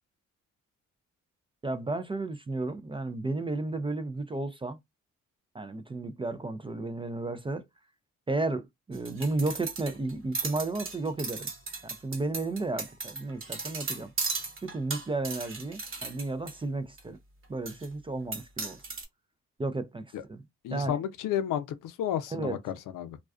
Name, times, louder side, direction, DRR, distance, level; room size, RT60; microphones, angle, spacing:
voice 1, 1.6-4.8 5.5-7.7 8.3-11.5 11.8-14.1 14.6-17.2 17.5-18.8 19.6-20.4 20.7-21.0 22.3-22.6, right 2 dB, 15° right, 0.3 m, -33 dB
sound 1, 8.9-16.5 17.0-17.1 17.7-17.9 18.3-19.0, right 4 dB, 40° right, 0.9 m, -36 dB
voice 2, 20.6-23.2, left 10 dB, 80° left, 0.5 m, -32 dB
2.3 x 2.3 x 2.3 m
cardioid pair, 75°, 32 cm